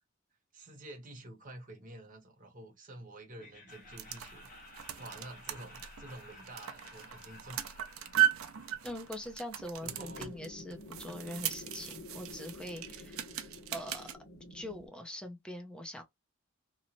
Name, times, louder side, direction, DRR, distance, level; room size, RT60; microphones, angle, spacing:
voice 1, 0.5-7.6 7.9-8.3 9.8-10.3, right 1 dB, 40° right, 0.9 m, -49 dB
Laughter, 3.4-10.3, left 1 dB, 40° left, 1.0 m, -55 dB
sound 1, 3.7-14.2, right 12 dB, 85° right, 0.5 m, -37 dB
voice 2, 8.8-13.3 13.7-14.1 14.5-16.0, left 1 dB, 5° left, 0.5 m, -43 dB
sound 2, 9.8-14.9, left 2 dB, 75° left, 1.1 m, -49 dB
2.9 x 2.1 x 2.5 m
head